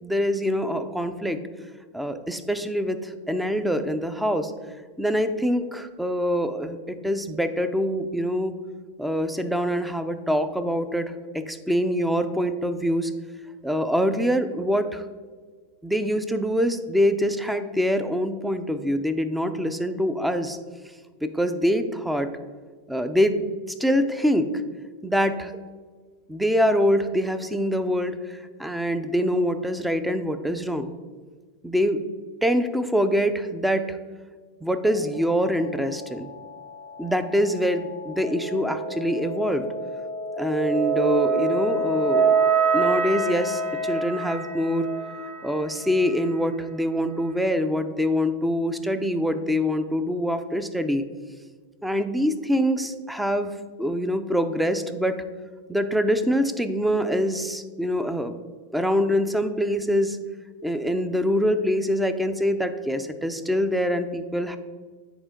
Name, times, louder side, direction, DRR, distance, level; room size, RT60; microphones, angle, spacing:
voice 1, 0.0-1.4 1.9-4.5 5.0-8.5 9.0-13.1 13.6-15.1 15.8-20.6 21.2-22.3 22.9-23.5 23.8-24.5 25.0-25.5 26.3-30.9 31.6-32.0 32.4-34.0 34.6-36.3 37.0-39.6 40.3-42.4 42.7-44.9 45.4-51.0 51.8-53.5 53.8-55.2 55.7-58.3 58.7-60.2 60.6-64.6, equal, 5° right, 10 dB, 0.5 m, -24 dB
sound 1, 34.9-46.2, right 4 dB, 55° right, 1.8 m, -27 dB
9.8 x 4.4 x 3.7 m, 1.5 s
hypercardioid pair, 110°, 0 cm